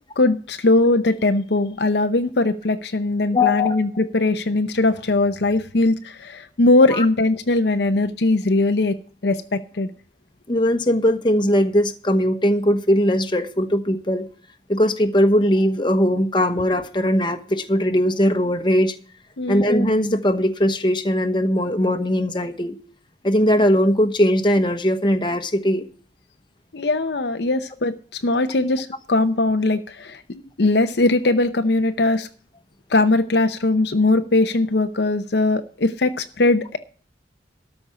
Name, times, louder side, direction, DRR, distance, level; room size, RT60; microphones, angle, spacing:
voice 1, 0.2-9.0 9.2-9.9 19.4-19.6 26.7-27.9 28.2-30.2 30.6-32.3 32.9-36.8, left 2 dB, 65° left, 8 dB, 0.7 m, -20 dB
voice 2, 3.3-4.0 6.9-7.0 10.5-14.3 14.7-18.9 19.5-22.8 23.2-25.9, equal, 25° left, 7 dB, 1.1 m, -20 dB
13.0 x 5.3 x 8.6 m, 0.43 s
head